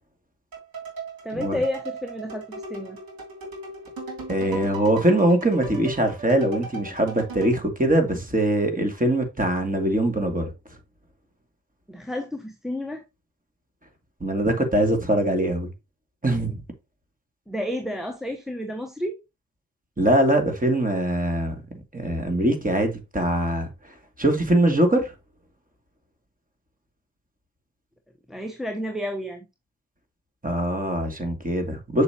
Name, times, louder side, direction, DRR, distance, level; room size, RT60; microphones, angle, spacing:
sound 1, 0.5-7.6, right 3 dB, 50° right, 2.9 m, -38 dB
voice 1, 1.2-3.0 11.9-13.0 17.5-19.2 28.3-29.5, left 1 dB, ahead, 1.0 m, -31 dB
voice 2, 4.3-10.5 14.2-15.7 16.2-16.6 20.0-21.6 21.9-23.7 24.2-25.1 30.4-32.0, right 1 dB, 15° right, 2.5 m, -22 dB
6.7 x 6.5 x 2.9 m
hypercardioid pair, 40°, 46 cm